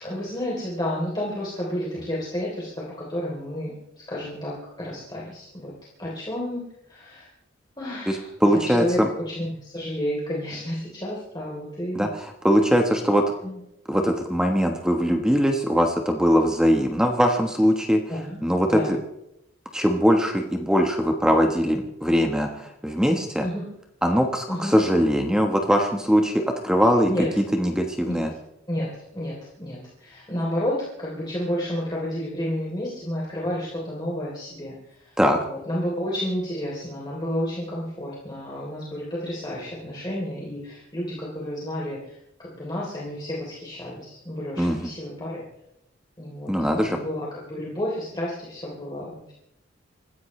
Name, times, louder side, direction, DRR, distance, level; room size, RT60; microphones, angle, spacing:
voice 1, 0.0-5.7 6.0-6.6 6.9-7.3 7.8-12.1 13.4-13.6 18.1-18.4 18.7-19.0 23.4-23.6 24.5-24.8 27.1-27.3 28.0-28.1 28.7-34.8 35.1-42.0 42.5-45.4 46.2-49.3, equal, 20° left, -5 dB, 3.3 m, -31 dB
voice 2, 8.1-9.1 11.9-13.2 13.9-18.0 18.4-19.0 19.7-23.5 24.0-28.3 35.2-35.4 44.6-44.9 46.5-47.0, equal, 5° right, 3 dB, 1.2 m, -21 dB
26.0 x 15.0 x 3.2 m, 0.83 s
head